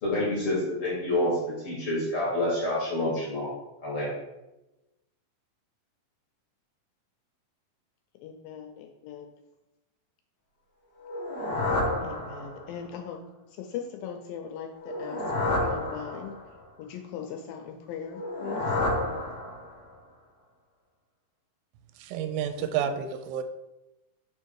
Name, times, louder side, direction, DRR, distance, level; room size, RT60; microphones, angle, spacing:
voice 1, 0.0-3.5 3.8-4.1, left 1 dB, 55° left, -6 dB, 1.6 m, -28 dB
voice 2, 8.2-9.3 12.0-13.2 13.6-15.2 15.6-16.3 16.8-18.6, left 8 dB, 80° left, 3 dB, 2.1 m, -39 dB
sound 1, 11.0-12.8 14.7-16.6 18.1-19.9, left 2 dB, 35° left, 0.9 m, -30 dB
voice 3, 22.1-23.4, right 8 dB, 85° right, 9 dB, 2.6 m, -30 dB
6.9 x 3.5 x 4.6 m, 0.98 s
omnidirectional pair, 4.5 m